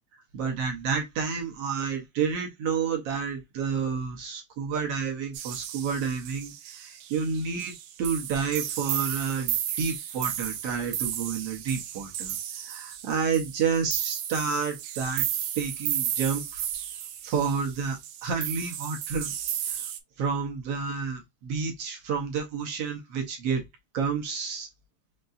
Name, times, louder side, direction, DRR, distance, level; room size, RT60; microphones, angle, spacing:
voice 1, 0.3-12.4 12.6-15.3 15.6-16.7 17.2-19.3 19.7-19.8 20.2-23.6 23.9-24.7, right 6 dB, 65° right, 1.8 m, -30 dB
sound 1, 5.3-20.0, right 11 dB, 80° right, 2.1 m, -34 dB
5.6 x 2.9 x 2.5 m
omnidirectional pair, 3.4 m